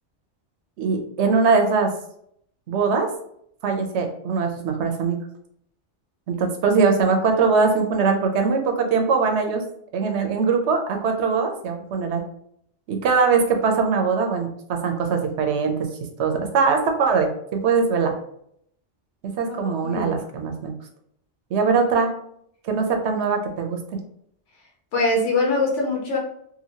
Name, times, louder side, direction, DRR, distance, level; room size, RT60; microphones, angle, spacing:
voice 1, 0.8-1.9 2.7-3.1 3.6-5.2 6.3-9.6 9.9-12.2 12.9-15.7 16.2-18.1 19.4-20.7 21.5-22.1 22.6-24.0, right 5 dB, 70° right, 4 dB, 0.9 m, -21 dB
voice 2, 19.5-20.1 24.9-26.2, left 2 dB, 85° left, -2 dB, 1.2 m, -23 dB
2.8 x 2.6 x 2.7 m, 0.69 s
omnidirectional pair, 1.2 m